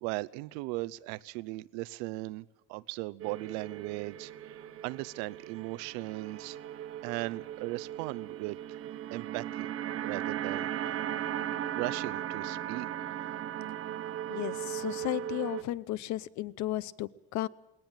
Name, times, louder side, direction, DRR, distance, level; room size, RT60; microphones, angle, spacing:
voice 1, 0.0-6.6 7.0-8.8 9.1-9.7 9.9-11.0 11.7-12.9, right 21 dB, 85° right, 17 dB, 0.8 m, -38 dB
sound 1, 3.2-15.6, right 11 dB, 35° right, 1.3 m, -37 dB
voice 2, 14.3-17.5, left 15 dB, 45° left, 19 dB, 0.8 m, -34 dB
20.0 x 19.0 x 9.1 m, 0.88 s
cardioid pair, 155°, 39 cm